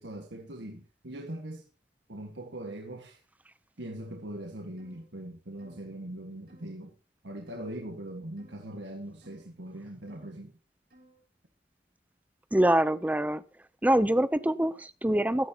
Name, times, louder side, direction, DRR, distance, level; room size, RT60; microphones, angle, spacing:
voice 1, 0.0-1.6 2.1-3.2 3.8-6.9 7.2-10.5, right 1 dB, 90° right, 1.7 m, -41 dB
sound 1, 4.8-5.0 5.6-5.9 6.5-6.7 7.5-7.8 8.4-8.6 9.2-9.4 10.1-10.3 10.9-11.2, right 1 dB, 60° right, 7.1 m, -59 dB
voice 2, 12.5-13.4 13.8-15.5, right 1 dB, 10° right, 0.6 m, -25 dB
16.0 x 13.0 x 2.9 m
head